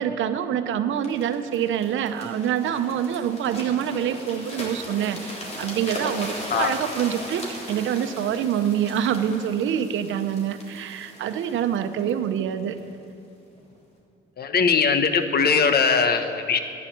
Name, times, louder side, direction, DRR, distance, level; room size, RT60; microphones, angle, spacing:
voice 1, 0.0-12.8, right 9 dB, 75° right, 10 dB, 0.9 m, -26 dB
sound 1, 1.0-12.9 13.5-13.7, equal, 30° left, 3.5 m, -38 dB
voice 2, 14.4-16.6, left 5 dB, 50° left, 8 dB, 1.2 m, -20 dB
11.5 x 9.7 x 9.3 m, 2.6 s
cardioid pair, 90°, 20 cm